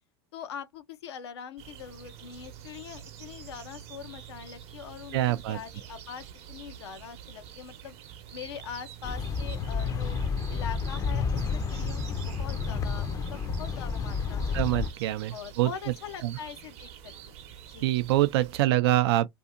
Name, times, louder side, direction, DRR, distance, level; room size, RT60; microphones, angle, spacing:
voice 1, 0.3-5.2 5.5-8.0 8.3-10.2 10.5-14.8 15.3-17.4 17.7-17.9, left 8 dB, 80° left, 0.6 m, -43 dB
sound 1, 1.6-18.6, right 10 dB, 50° right, 0.7 m, -47 dB
voice 2, 5.1-5.6 14.5-15.7 16.2-16.3 17.8-19.3, right 15 dB, 70° right, 0.4 m, -25 dB
sound 2, 9.0-14.9, left 5 dB, 25° left, 0.5 m, -30 dB
2.7 x 2.6 x 2.4 m
hypercardioid pair, 105°, 13 cm